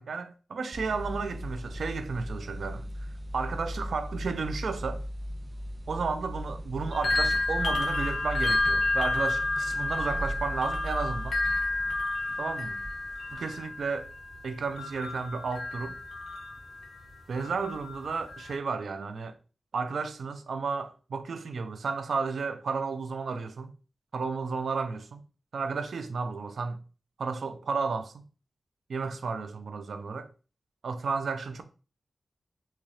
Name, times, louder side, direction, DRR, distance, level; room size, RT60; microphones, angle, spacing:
voice 1, 0.0-3.1 3.3-5.0 5.9-11.4 12.4-12.8 13.3-14.1 14.4-16.0 17.3-19.4 19.7-23.7 24.1-25.2 25.5-26.8 27.2-28.2 28.9-30.3 30.8-31.6, right 4 dB, 85° right, 0.4 m, -33 dB
sound 1, 0.7-13.3, equal, 35° right, 0.6 m, -37 dB
sound 2, 6.9-17.0 17.4-18.6, left 2 dB, 85° left, 0.9 m, -31 dB
4.1 x 2.4 x 3.2 m
wide cardioid pair, 95°, 0 cm